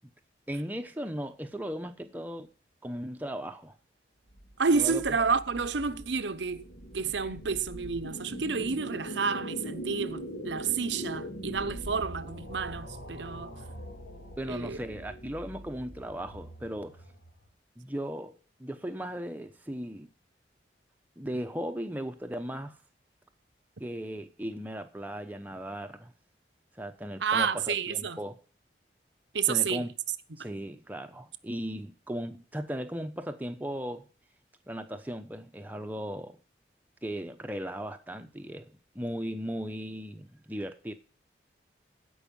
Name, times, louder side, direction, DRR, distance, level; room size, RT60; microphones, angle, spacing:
voice 1, 0.5-2.5 2.8-3.7 4.7-5.0 7.0-7.3 14.4-16.9 17.8-20.1 21.2-22.8 23.8-26.1 26.8-28.4 29.5-29.9 30.4-34.1 34.7-36.4 37.0-40.9, equal, 10° right, 0.8 m, -37 dB
sound 1, 4.3-17.5, right 1 dB, 70° left, 2.5 m, -42 dB
voice 2, 4.6-6.6 6.9-13.5 14.5-14.8 27.2-28.2 29.3-29.9, right 5 dB, 75° right, 0.8 m, -30 dB
15.5 x 5.6 x 5.4 m
head